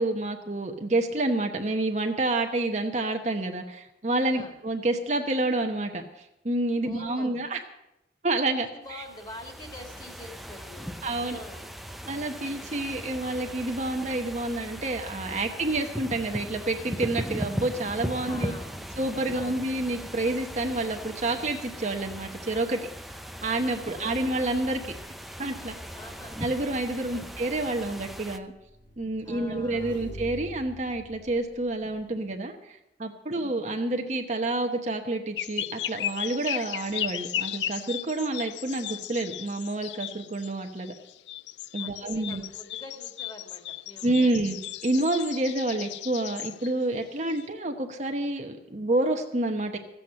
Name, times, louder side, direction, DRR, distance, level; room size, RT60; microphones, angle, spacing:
voice 1, 0.0-6.0 6.4-7.6 8.2-9.0 11.0-11.4 12.1-18.5 19.0-22.8 23.4-24.8 25.4-25.7 26.4-28.5 29.0-40.9 41.7-42.4 44.0-49.8, right 2 dB, 40° right, 4 dB, 1.0 m, -28 dB
voice 2, 6.8-7.3 8.6-11.7 18.3-18.8 19.3-19.7 23.8-24.4 25.9-26.4 27.0-27.3 29.2-30.0 33.3-33.6 41.8-44.3, left 1 dB, 25° left, 3 dB, 2.4 m, -45 dB
sound 1, 8.9-28.4, equal, ahead, 0.6 m, -39 dB
Motorcycle / Engine, 28.4-32.1, equal, 50° left, 3.8 m, -46 dB
sound 2, 35.4-47.5, left 11 dB, 85° left, 0.4 m, -36 dB
14.5 x 7.9 x 8.6 m, 0.86 s
head